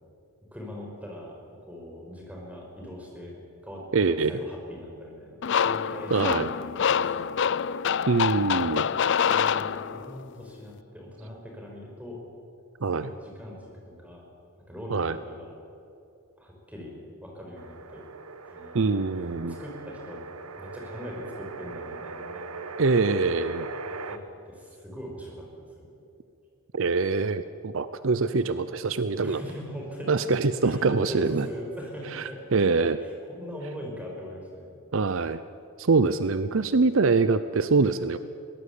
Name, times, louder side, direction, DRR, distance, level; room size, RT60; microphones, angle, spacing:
voice 1, 0.5-3.3 3.6-7.6 9.3-12.2 13.0-14.2 14.6-15.5 16.4-16.9 17.2-18.0 18.4-18.8 19.4-20.2 20.6-22.5 23.8-24.2 24.4-25.9 29.2-30.4 30.6-32.4 33.0-34.8, equal, 5° right, -1 dB, 5.1 m, -41 dB
voice 2, 3.9-4.3 6.1-6.5 8.1-8.9 12.8-13.1 14.9-15.2 18.7-19.6 22.8-23.7 26.7-29.4 30.1-31.5 32.1-32.2 32.5-33.0 34.9-35.4 35.8-38.2, right 4 dB, 60° right, 13 dB, 0.6 m, -24 dB
sound 1, 5.4-10.2, left 7 dB, 55° left, 0.4 m, -26 dB
sound 2, 17.5-24.2, right 4 dB, 80° right, 1.3 m, -40 dB
22.5 x 18.0 x 8.4 m, 2.7 s
head